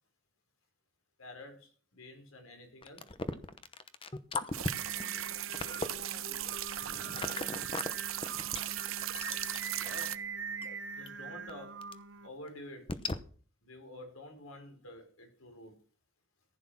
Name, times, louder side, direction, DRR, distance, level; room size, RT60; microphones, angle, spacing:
voice 1, 1.2-3.1 9.8-10.2 11.0-11.8 12.2-13.0 13.6-15.7, left 1 dB, 90° left, 4 dB, 5.2 m, -49 dB
sound 1, 2.8-7.9 8.2-10.1 10.6-10.7 11.1-11.2 11.5-11.6 11.8-11.9 12.5-12.6 12.9-13.2, left 3 dB, 25° left, 0.9 m, -38 dB
voice 2, 4.3-8.0 10.6-11.1, left 1 dB, 65° left, 1 dB, 3.0 m, -58 dB
sound 2, 4.5-10.2, right 14 dB, 80° right, 0.8 m, -38 dB
Singing, 4.7-12.3, right 4 dB, 60° right, 1.2 m, -43 dB
15.0 x 9.7 x 6.0 m, 0.42 s
head